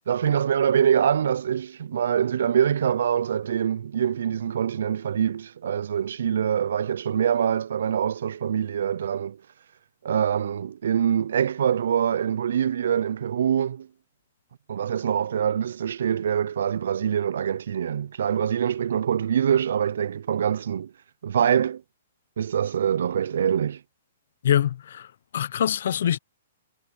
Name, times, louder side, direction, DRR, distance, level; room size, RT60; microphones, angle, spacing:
voice 1, 0.1-9.4 10.0-13.9 14.7-20.9 21.2-21.8 22.4-23.8, right 8 dB, 75° right, 0.4 m, -24 dB
voice 2, 24.4-25.1 25.3-26.2, left 10 dB, 65° left, 0.7 m, -24 dB
hypercardioid pair, 150°, 0 cm